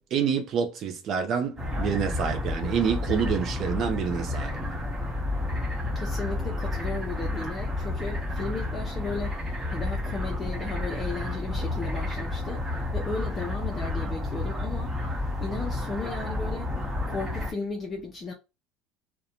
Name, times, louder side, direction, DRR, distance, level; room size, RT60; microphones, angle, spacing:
voice 1, 0.1-4.6, right 7 dB, 45° right, 0.4 m, -27 dB
sound 1, 1.6-17.5, left 2 dB, 15° right, 1.0 m, -31 dB
voice 2, 5.9-9.4 9.7-12.6 12.9-16.7 17.1-18.3, left 3 dB, 25° left, 0.5 m, -35 dB
2.5 x 2.1 x 2.8 m
supercardioid pair, 135°, 0 cm